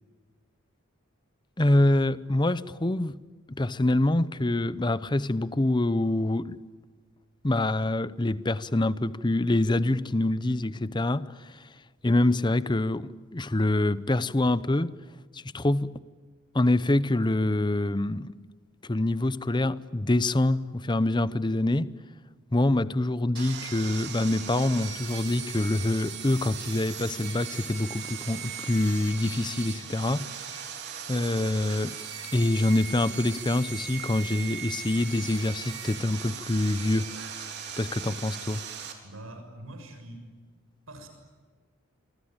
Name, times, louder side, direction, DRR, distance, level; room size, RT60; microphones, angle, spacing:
voice 1, 1.6-3.2 3.5-6.6 7.4-11.7 12.0-15.0 15.3-15.9 16.5-18.3 18.8-21.9 22.5-30.6 31.1-32.0 32.3-37.4 37.8-38.6, left 1 dB, 20° left, 0.7 m, -26 dB
Sawing, 23.4-38.9, right 8 dB, 55° right, 3.9 m, -39 dB
voice 2, 39.0-40.3 40.9-41.1, right 1 dB, 85° right, 6.7 m, -43 dB
27.0 x 24.0 x 8.9 m
head